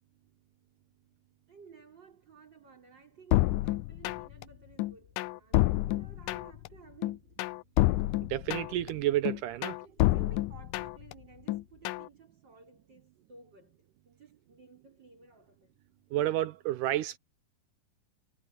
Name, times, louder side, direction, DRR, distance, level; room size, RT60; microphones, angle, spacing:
voice 1, 1.5-7.4 9.8-15.7, right 5 dB, 30° right, 5.3 m, -55 dB
sound 1, 3.3-4.4 4.8-6.7 7.0-8.9 9.2-11.1 11.5-12.1, left 18 dB, 80° left, 2.0 m, -28 dB
voice 2, 8.3-9.8 16.1-17.2, right 14 dB, 80° right, 2.0 m, -30 dB
omnidirectional pair, 4.1 m